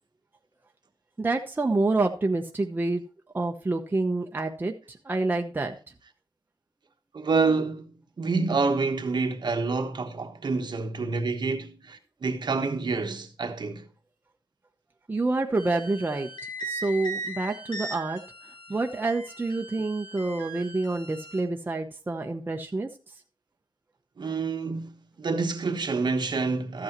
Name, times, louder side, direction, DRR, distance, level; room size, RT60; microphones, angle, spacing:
voice 1, 1.2-3.0 3.3-5.8 15.1-16.3 16.6-18.2 18.7-22.9, right 2 dB, 20° right, 0.9 m, -27 dB
voice 2, 7.1-13.9 24.2-26.8, right 4 dB, 55° right, 1.2 m, -28 dB
sound 1, 15.6-21.4, right 2 dB, 60° left, 4.7 m, -39 dB
13.5 x 8.5 x 3.1 m
wide cardioid pair, 140°, 9 cm